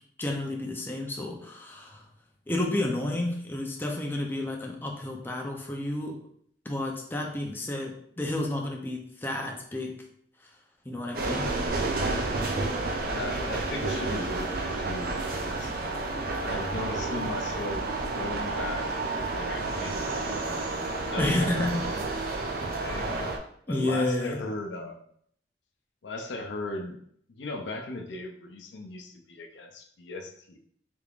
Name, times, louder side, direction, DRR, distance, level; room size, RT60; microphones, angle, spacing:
voice 1, 0.2-2.1 2.5-6.2 6.7-10.0 10.4-10.5 10.9-11.5 21.2-21.8 23.7-24.4, left 1 dB, 10° left, 0 dB, 0.5 m, -31 dB
sound 1, 11.1-23.4, right 2 dB, 55° right, 0.5 m, -30 dB
voice 2, 13.1-20.4 21.0-21.7 22.3-23.1 23.7-25.0 26.0-27.0 27.3-30.6, left 2 dB, 85° left, 4 dB, 0.5 m, -38 dB
3.4 x 3.4 x 2.4 m, 0.65 s
head